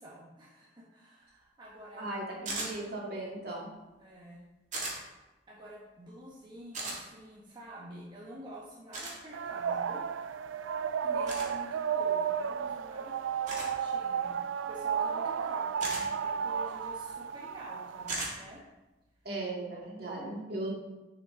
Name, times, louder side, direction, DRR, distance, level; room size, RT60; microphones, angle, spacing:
voice 1, 0.0-2.2 2.5-3.3 4.0-4.4 5.5-10.1 11.0-13.2 13.6-18.6 20.0-20.2 20.5-20.7, equal, 25° right, -5 dB, 1.2 m, -49 dB
voice 2, 2.0-3.7 19.2-20.7, right 2 dB, 55° right, -3 dB, 2.2 m, -37 dB
sound 1, 2.5-2.7 4.7-5.0 6.7-7.0 8.9-9.2 11.3-11.5 13.5-13.7 15.8-16.0 18.1-18.3, right 2 dB, 40° right, 2.4 m, -35 dB
sound 2, 9.3-18.1, right 7 dB, 90° right, 0.4 m, -33 dB
10.5 x 5.8 x 3.8 m, 1.1 s
head